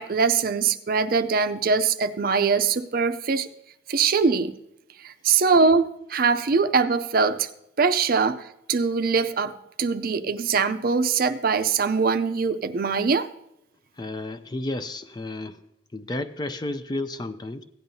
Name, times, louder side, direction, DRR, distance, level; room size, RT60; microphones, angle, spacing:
voice 1, 0.0-3.5 3.9-4.5 5.0-7.5 7.8-8.4 8.7-13.3, right 5 dB, 50° right, 10 dB, 0.5 m, -22 dB
voice 2, 14.0-15.6 15.9-17.6, left 2 dB, 20° left, 10 dB, 0.4 m, -32 dB
16.0 x 10.5 x 2.7 m, 0.79 s
head